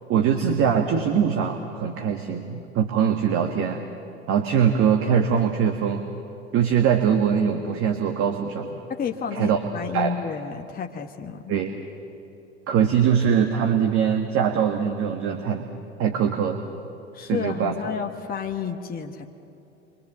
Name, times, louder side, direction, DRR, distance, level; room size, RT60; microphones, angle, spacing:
voice 1, 0.1-3.8 4.3-6.0 6.5-8.7 9.3-9.6 9.9-10.1 11.5-11.8 12.7-15.7 16.0-16.7 17.2-17.8, right 7 dB, 40° right, 4 dB, 1.8 m, -22 dB
voice 2, 8.9-11.5 17.1-19.3, left 7 dB, 25° left, 4 dB, 1.4 m, -31 dB
29.0 x 24.0 x 7.4 m, 2.8 s
figure-of-eight pair, 75°, 35 cm